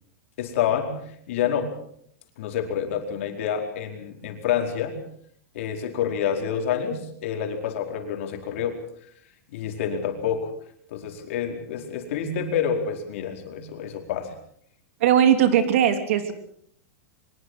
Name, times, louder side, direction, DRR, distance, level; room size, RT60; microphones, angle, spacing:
voice 1, 0.4-1.7 2.4-5.0 5.5-8.8 9.5-10.5 10.9-14.3, left 8 dB, 60° left, 3 dB, 4.7 m, -28 dB
voice 2, 15.0-16.3, right 9 dB, 60° right, 8 dB, 3.2 m, -19 dB
24.0 x 21.5 x 6.4 m, 0.67 s
supercardioid pair, 170°, 8 cm